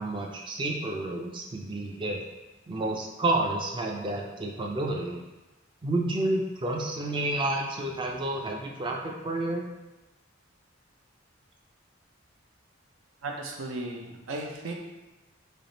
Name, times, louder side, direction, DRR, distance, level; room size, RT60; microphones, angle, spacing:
voice 1, 0.0-2.2 2.7-5.2 5.8-9.6, right 2 dB, 25° right, 0 dB, 0.3 m, -30 dB
voice 2, 13.2-14.7, right 2 dB, 90° right, 1 dB, 0.6 m, -35 dB
3.3 x 2.5 x 3.9 m, 1.1 s
head